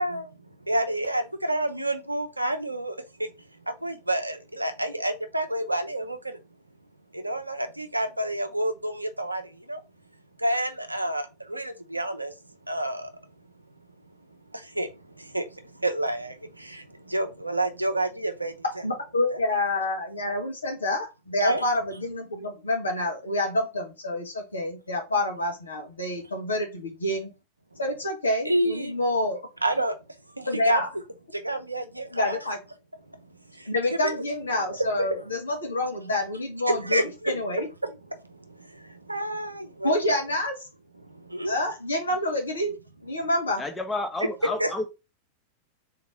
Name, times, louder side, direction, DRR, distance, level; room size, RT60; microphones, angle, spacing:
voice 1, 0.0-3.0 3.7-6.4 7.1-9.8 10.4-12.3 12.7-13.1 14.5-18.6 19.3-19.4 21.4-21.6 27.7-27.8 28.5-29.0 29.6-30.0 30.3-30.8 31.3-32.4 33.5-34.2 34.8-35.2 36.7-37.4 37.8-40.2 41.0-41.5 44.6-44.8, right 1 dB, 85° right, 0.6 m, -29 dB
voice 2, 18.8-27.3 27.8-29.4 30.5-30.9 32.1-32.6 33.6-37.7 39.8-40.5 41.5-42.8 43.0-43.6, left 1 dB, 75° left, 1.3 m, -27 dB
voice 3, 43.6-44.8, left 2 dB, 10° left, 0.8 m, -30 dB
3.6 x 2.9 x 4.8 m
figure-of-eight pair, 90°, 0 cm